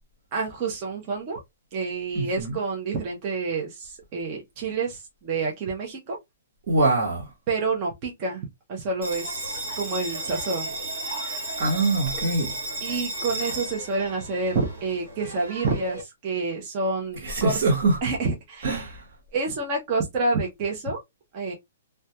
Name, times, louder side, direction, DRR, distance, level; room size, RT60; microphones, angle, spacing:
voice 1, 0.3-1.4 1.7-6.2 7.5-10.7 12.8-17.6 18.0-18.9 19.3-21.0 21.3-21.5, right 3 dB, 20° right, 0.6 m, -28 dB
voice 2, 2.1-2.6 6.7-7.3 11.6-12.5 17.1-18.0 18.6-19.1, right 2 dB, 40° right, 0.9 m, -24 dB
Bell, 9.0-16.0, right 2 dB, 70° right, 1.2 m, -34 dB
2.2 x 2.2 x 2.7 m
hypercardioid pair, 175°, 0 cm